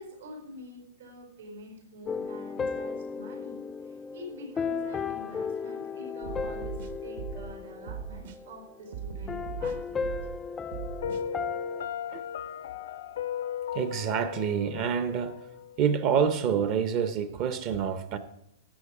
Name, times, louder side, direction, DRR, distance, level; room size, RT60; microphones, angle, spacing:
voice 1, 0.0-10.0 10.9-11.2, equal, 85° right, 4.5 m, -46 dB
sound 1, 2.1-8.7 9.3-11.9, left 5 dB, 10° left, 0.4 m, -35 dB
sound 2, 6.2-7.5 7.9-8.4 8.9-10.4 10.7-11.2, right 7 dB, 60° right, 1.2 m, -39 dB
Piano, 11.0-16.0, left 8 dB, 65° left, 0.6 m, -36 dB
voice 2, 13.7-15.4 15.8-18.2, right 7 dB, 30° right, 0.7 m, -27 dB
13.5 x 7.9 x 4.9 m
supercardioid pair, 170°, 0 cm